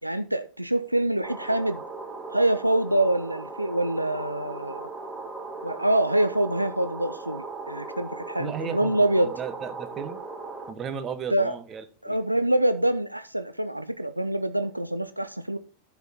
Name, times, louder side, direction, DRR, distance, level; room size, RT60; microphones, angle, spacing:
voice 1, 0.0-1.8 2.3-4.9 5.6-9.3 11.3-11.6 12.0-15.6, right 1 dB, 85° right, 0.6 m, -25 dB
sound 1, 1.2-10.7, right 3 dB, 10° right, 1.5 m, -38 dB
voice 2, 8.4-10.2 10.7-12.2, right 7 dB, 25° right, 1.2 m, -35 dB
11.0 x 7.2 x 4.1 m
figure-of-eight pair, 90°, 0 cm